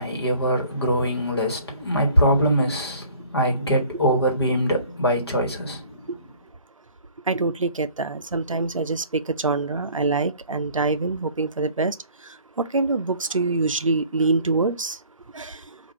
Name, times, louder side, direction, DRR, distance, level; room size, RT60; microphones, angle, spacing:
voice 1, 0.0-6.3, equal, 45° left, 1.4 m, -23 dB
voice 2, 7.3-9.0 9.4-11.9 12.7-14.9 15.4-15.5, right 3 dB, 60° right, 0.5 m, -24 dB
4.8 x 2.5 x 4.4 m
figure-of-eight pair, 165°, 19 cm